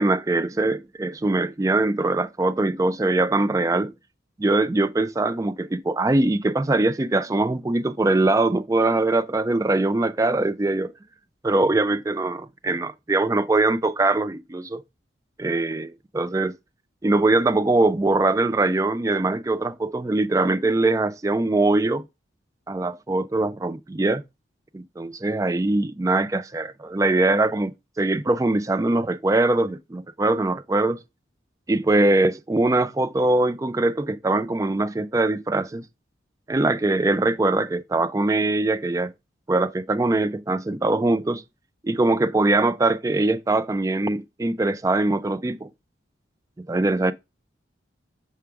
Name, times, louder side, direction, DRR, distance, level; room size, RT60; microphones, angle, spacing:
voice 1, 0.0-3.9 4.4-10.9 11.4-14.8 15.4-16.5 17.0-22.0 22.7-24.2 24.7-27.7 28.0-31.0 31.7-35.8 36.5-39.1 39.5-41.4 41.8-45.7 46.6-47.1, right 2 dB, 15° right, 0.3 m, -22 dB
6.7 x 4.8 x 3.4 m
head